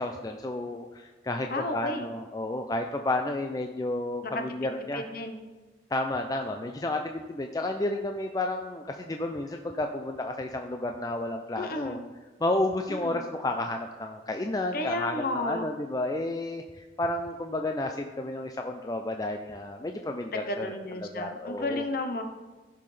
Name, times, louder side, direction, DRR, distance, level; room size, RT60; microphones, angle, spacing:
voice 1, 0.0-5.0 5.9-12.0 12.4-20.7 21.0-21.8, left 2 dB, 20° left, 4 dB, 0.4 m, -31 dB
voice 2, 1.5-2.1 4.3-4.4 4.9-5.4 11.6-12.1 12.9-13.2 14.7-15.7 20.3-22.2, left 2 dB, 50° left, 5 dB, 0.9 m, -33 dB
14.5 x 5.7 x 3.3 m, 1.2 s
head